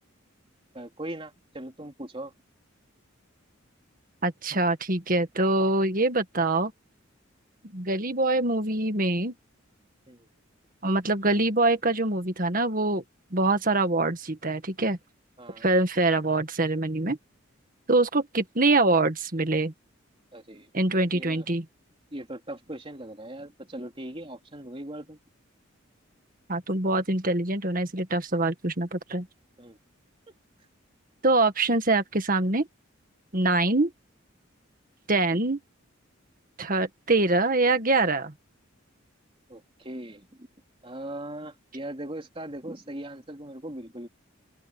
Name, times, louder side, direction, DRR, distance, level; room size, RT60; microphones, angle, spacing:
voice 1, 0.7-2.3 10.1-10.3 15.4-15.7 20.3-21.4 22.1-25.2 29.6-29.8 35.3-35.4 39.5-40.5 40.8-44.1, right 1 dB, 25° right, 3.4 m, -39 dB
voice 2, 4.2-6.7 7.6-9.3 10.8-13.0 13.3-15.0 15.6-17.2 17.9-19.7 20.7-21.6 26.5-29.3 31.2-32.7 33.3-33.9 35.1-35.6 36.6-38.3, right 2 dB, 40° right, 1.8 m, -24 dB
open air
head